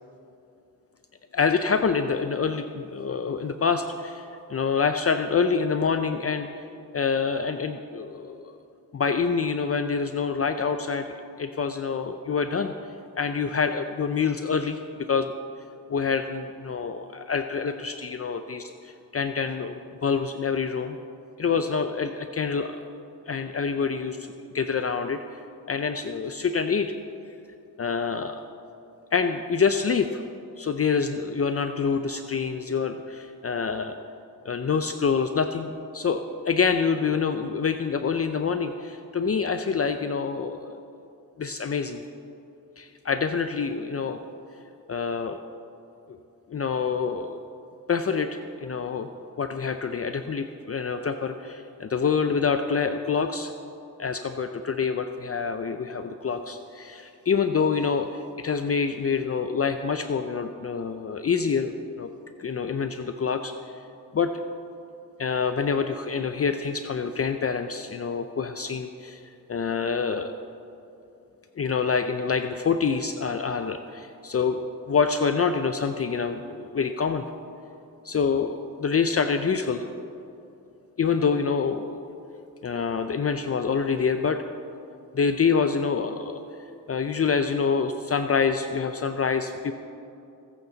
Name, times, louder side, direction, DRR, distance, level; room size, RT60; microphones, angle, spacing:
voice 1, 1.3-6.6 6.9-8.4 8.9-11.1 11.4-12.7 13.2-14.8 15.1-15.3 15.9-21.0 21.4-22.8 23.3-25.4 25.7-26.9 27.8-28.4 29.1-30.2 30.6-33.9 34.4-40.7 41.4-42.0 42.8-44.2 44.9-45.4 46.5-47.4 47.9-49.1 49.4-53.5 54.0-62.1 62.4-63.8 64.1-64.3 65.2-69.2 69.5-70.3 71.6-77.2 78.0-79.9 81.0-82.0 82.6-84.4 85.1-86.4 86.9-89.7, left 5 dB, 40° left, 8 dB, 0.6 m, -26 dB
21.5 x 8.3 x 4.0 m, 2.7 s
cardioid pair, 75°, 36 cm